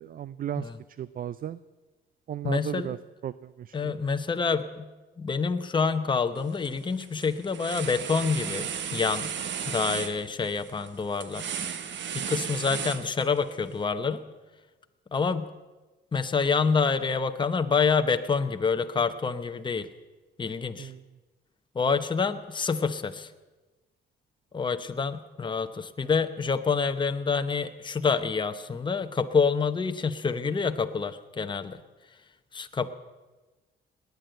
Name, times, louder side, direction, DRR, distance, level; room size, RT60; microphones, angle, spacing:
voice 1, 0.0-0.7 1.0-1.6 2.3-3.0 3.2-3.3 3.6-3.9 20.8-21.0, right 10 dB, 45° right, 16 dB, 0.4 m, -34 dB
voice 2, 2.4-3.0 3.7-4.9 5.2-9.3 9.7-11.5 12.1-14.2 15.1-15.5 16.1-19.9 20.4-20.9 21.7-23.3 24.5-31.8 32.5-32.9, left 5 dB, 25° left, 8 dB, 0.8 m, -27 dB
sound 1, 6.4-6.7 7.0-13.5, right 8 dB, 65° right, 1.2 m, -35 dB
19.0 x 9.4 x 7.9 m, 1.2 s
cardioid pair, 90°, 20 cm